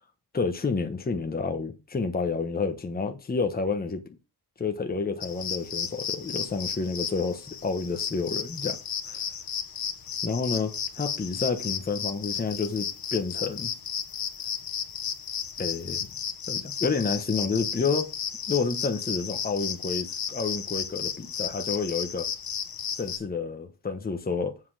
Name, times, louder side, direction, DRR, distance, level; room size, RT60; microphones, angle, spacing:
voice 1, 0.3-4.0 4.6-8.8 9.1-9.2 10.2-13.7 15.6-16.0 16.5-18.1 18.5-22.3 23.0-24.5, left 4 dB, 25° left, 1.1 m, -29 dB
sound 1, 5.2-23.2, left 8 dB, 65° left, 1.5 m, -33 dB
7.8 x 5.4 x 6.3 m
wide cardioid pair, 160°, 39 cm